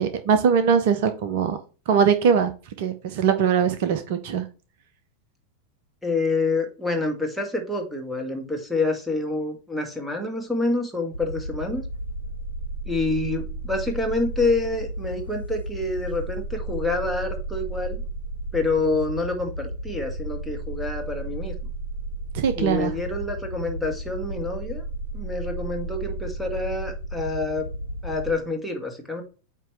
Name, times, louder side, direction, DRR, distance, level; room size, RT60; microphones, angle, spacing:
voice 1, 0.0-1.6 1.9-2.5 2.8-4.4 22.3-22.9, right 7 dB, 50° right, 10 dB, 0.7 m, -21 dB
voice 2, 6.0-11.8 12.9-18.0 18.5-21.5 22.6-24.8 25.1-27.7 28.0-29.2, left 2 dB, ahead, 0 dB, 1.8 m, -27 dB
sound 1, 11.1-28.3, right 1 dB, 85° left, 1.1 m, -33 dB
9.0 x 3.0 x 4.6 m, 0.35 s
figure-of-eight pair, 90°, 0 cm